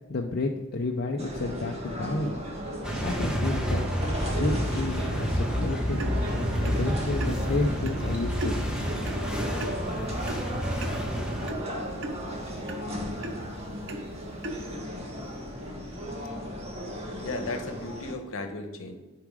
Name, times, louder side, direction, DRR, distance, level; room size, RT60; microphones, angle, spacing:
voice 1, 0.1-2.4 3.0-3.8 4.4-6.0 6.6-8.6, left 2 dB, 50° left, 2 dB, 0.5 m, -30 dB
sound 1, 1.2-18.1, equal, 30° right, 1.3 m, -36 dB
sound 2, 2.8-11.5, equal, 5° right, 1.0 m, -29 dB
sound 3, 5.9-14.8, right 1 dB, 60° right, 0.8 m, -39 dB
voice 2, 17.2-18.9, left 2 dB, 65° left, 6 dB, 1.1 m, -35 dB
7.1 x 4.9 x 4.8 m, 1.3 s
head